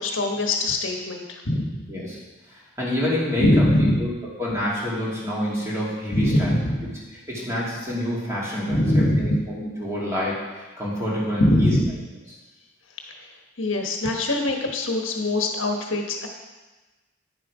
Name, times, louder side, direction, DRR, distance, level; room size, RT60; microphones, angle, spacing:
voice 1, 0.0-1.8 3.4-4.0 6.1-6.8 8.7-9.4 11.4-11.9 13.6-16.3, left 1 dB, 70° left, 2 dB, 1.2 m, -22 dB
voice 2, 1.9-2.2 2.5-3.6 4.0-4.1 4.4-6.6 7.1-11.8, equal, 15° right, -6 dB, 2.6 m, -27 dB
9.9 x 7.3 x 4.9 m, 1.2 s
head